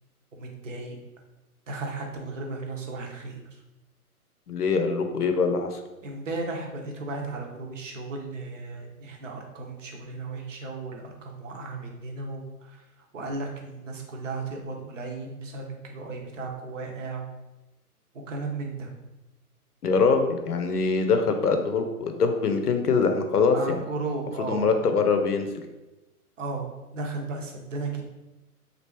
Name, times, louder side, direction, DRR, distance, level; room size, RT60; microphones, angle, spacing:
voice 1, 0.3-1.0 1.7-3.4 6.0-12.8 13.1-17.3 18.3-18.9 23.5-24.9 26.4-28.0, right 3 dB, 55° right, 2 dB, 0.7 m, -35 dB
voice 2, 4.5-5.8 19.8-23.8 24.5-25.5, left 4 dB, 80° left, 6 dB, 0.6 m, -23 dB
3.3 x 2.5 x 2.9 m, 1.0 s
figure-of-eight pair, 125°, 45 cm